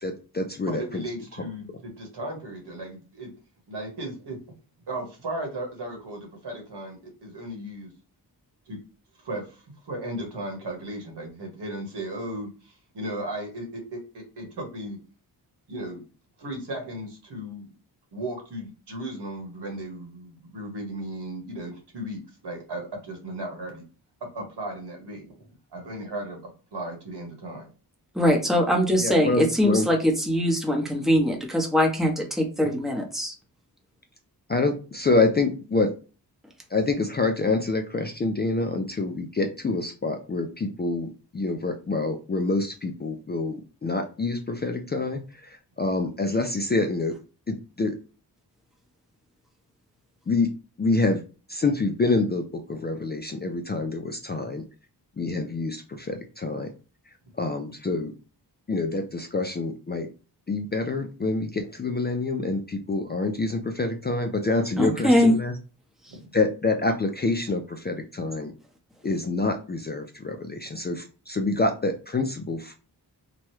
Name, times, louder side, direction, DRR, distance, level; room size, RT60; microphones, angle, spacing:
voice 1, 0.0-1.0 1.4-1.5 29.0-29.9 34.5-35.9 36.7-47.1 47.5-47.9 50.3-50.5 50.8-51.2 51.5-54.6 55.2-56.7 57.4-58.1 58.7-60.1 60.5-65.5 66.3-68.5 69.0-72.7, left 3 dB, 25° left, 4 dB, 0.3 m, -26 dB
voice 2, 0.7-3.3 3.7-4.4 4.9-7.9 8.7-8.8 9.2-15.0 15.7-16.0 16.4-17.7 18.1-23.8 24.2-26.4 26.7-27.7 66.1-66.3, right 1 dB, 75° right, 1 dB, 1.2 m, -36 dB
voice 3, 28.1-33.3 64.8-65.3 66.1-66.2, equal, ahead, 1 dB, 0.8 m, -22 dB
3.0 x 2.2 x 3.0 m, 0.35 s
wide cardioid pair, 85°, 41 cm